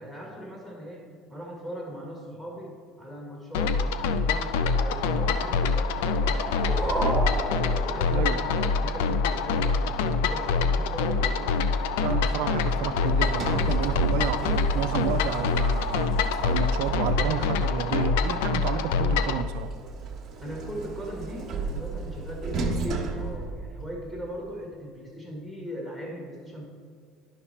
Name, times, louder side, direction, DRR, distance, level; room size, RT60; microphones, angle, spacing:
voice 1, 0.0-7.4 7.7-11.5 20.4-26.6, equal, 15° left, -1 dB, 1.6 m, -39 dB
sound 1, 3.5-19.4, left 4 dB, 80° left, 0.4 m, -25 dB
sound 2, 6.1-8.7, right 2 dB, 5° right, 1.3 m, -31 dB
voice 2, 8.1-8.4 12.0-14.4 14.7-16.1 16.4-19.7, right 9 dB, 75° right, 11 dB, 0.5 m, -31 dB
Sliding door, 12.8-17.7 19.3-24.2, right 5 dB, 45° right, 1.1 m, -34 dB
9.7 x 5.9 x 4.2 m, 2.1 s
supercardioid pair, 85°, 0 cm